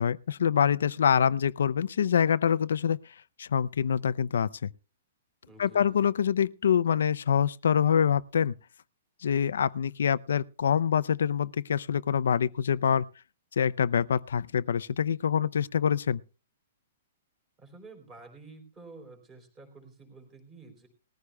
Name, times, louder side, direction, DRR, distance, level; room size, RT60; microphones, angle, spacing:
voice 1, 0.0-3.0 3.4-4.7 5.6-8.5 9.2-13.1 13.6-16.2, left 8 dB, 85° left, 0.5 m, -25 dB
voice 2, 5.5-6.2 17.6-20.9, right 3 dB, 15° right, 3.6 m, -50 dB
20.0 x 14.5 x 2.3 m
hypercardioid pair, 175°, 0 cm